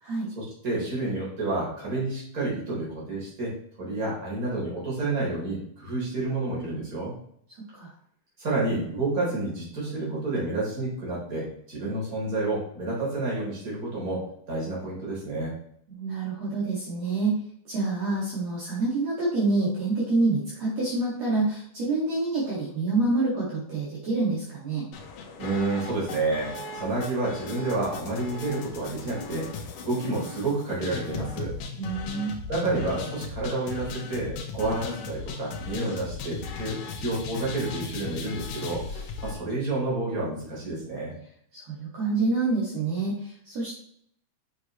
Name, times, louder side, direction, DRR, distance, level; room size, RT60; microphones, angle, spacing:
voice 1, 0.4-3.5 3.8-7.1 8.4-15.5 25.4-29.5 29.8-31.5 32.5-41.1, right 2 dB, 25° right, -5 dB, 3.8 m, -29 dB
voice 2, 15.9-17.4 17.6-24.8 31.8-32.3 41.5-43.7, right 3 dB, 55° right, -7 dB, 3.1 m, -27 dB
sound 1, 24.9-39.3, left 5 dB, 85° left, 2.6 m, -37 dB
8.3 x 6.4 x 3.1 m, 0.67 s
omnidirectional pair, 3.6 m